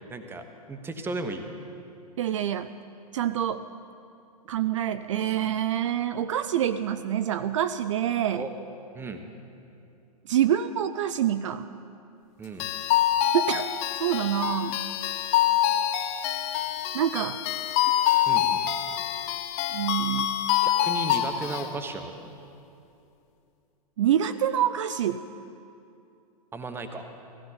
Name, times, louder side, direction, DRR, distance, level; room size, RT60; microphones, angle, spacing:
voice 1, 0.1-1.4 8.3-8.5 8.9-9.2 12.4-12.7 18.3-18.6 20.6-22.3 26.5-27.1, right 2 dB, 10° right, 7 dB, 1.1 m, -35 dB
voice 2, 2.2-2.7 3.1-3.7 4.5-8.5 10.3-11.7 13.3-13.7 14.0-14.8 16.9-17.4 19.7-20.4 24.0-25.2, right 10 dB, 55° right, 12 dB, 0.5 m, -26 dB
sound 1, 12.6-21.7, left 11 dB, 35° left, 0.8 m, -26 dB
18.5 x 15.5 x 4.1 m, 2.6 s
figure-of-eight pair, 105°, 20 cm